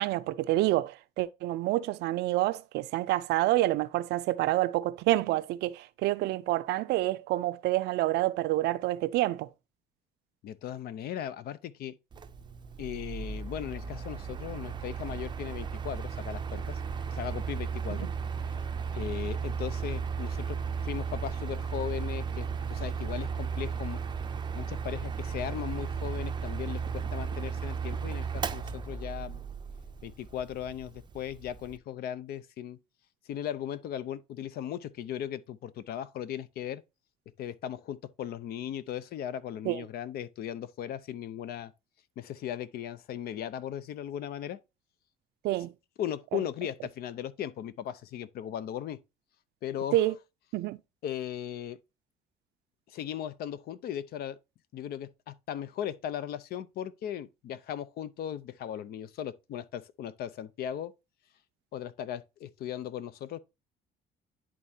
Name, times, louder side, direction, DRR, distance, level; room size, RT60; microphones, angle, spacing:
voice 1, 0.0-9.5 17.9-18.1 39.6-39.8 45.4-45.7 46.3-46.4 49.9-50.1 50.5-50.8, right 16 dB, 80° right, 0.5 m, -28 dB
voice 2, 10.4-12.0 12.8-16.8 17.1-18.1 18.4-18.5 18.9-20.6 20.8-24.0 24.5-29.4 30.0-32.8 33.3-36.8 37.4-41.7 42.2-44.6 46.0-49.0 49.6-50.0 51.0-51.8 52.9-54.4 54.7-60.9 61.7-63.4, left 10 dB, 65° left, 0.6 m, -37 dB
Mechanical fan, 12.1-31.8, right 6 dB, 25° right, 0.5 m, -35 dB
sound 1, 16.7-28.4, left 1 dB, 85° left, 2.1 m, -53 dB
11.0 x 3.7 x 2.7 m
cardioid pair, 110°, 17 cm